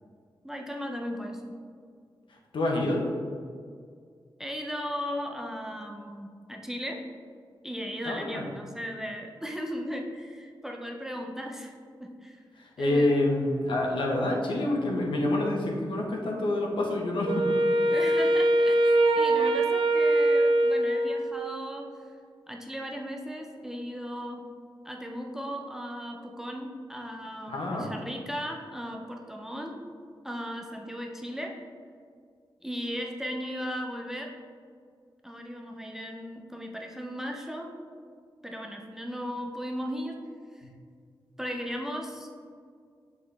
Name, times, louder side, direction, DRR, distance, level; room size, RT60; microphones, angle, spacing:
voice 1, 0.4-1.5 4.4-7.0 7.6-11.7 12.0-12.4 12.8-13.1 17.9-21.9 22.5-24.4 24.8-29.8 30.2-31.5 32.6-34.3 35.2-37.7 38.4-40.1 40.5-40.6 41.4-42.3, equal, 5° right, 1 dB, 0.5 m, -36 dB
voice 2, 2.3-3.1 8.0-8.4 12.6-17.5 27.5-27.9 40.6-40.7, left 1 dB, 80° left, 0 dB, 1.0 m, -27 dB
Wind instrument woodwind instrument, 17.3-21.6, right 1 dB, 80° right, 0.4 m, -23 dB
7.3 x 4.1 x 3.3 m, 2.1 s
wide cardioid pair, 165°, 8 cm